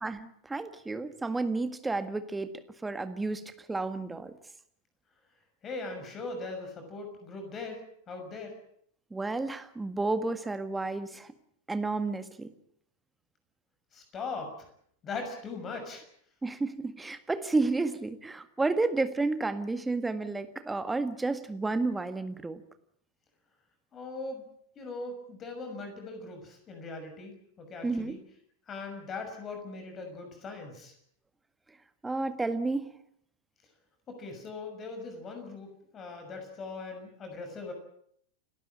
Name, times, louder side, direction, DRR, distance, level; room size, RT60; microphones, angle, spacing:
voice 1, 0.0-2.5 2.8-4.3 9.1-11.3 11.7-12.5 16.4-22.6 27.8-28.2 32.0-32.9, right 3 dB, 10° right, 10 dB, 1.7 m, -31 dB
voice 2, 5.6-8.5 13.9-14.7 15.0-16.0 23.9-24.5 24.8-28.2 28.7-30.9 34.1-37.7, left 3 dB, 25° left, 5 dB, 6.2 m, -40 dB
30.0 x 13.0 x 8.9 m, 0.68 s
figure-of-eight pair, 90°, 0 cm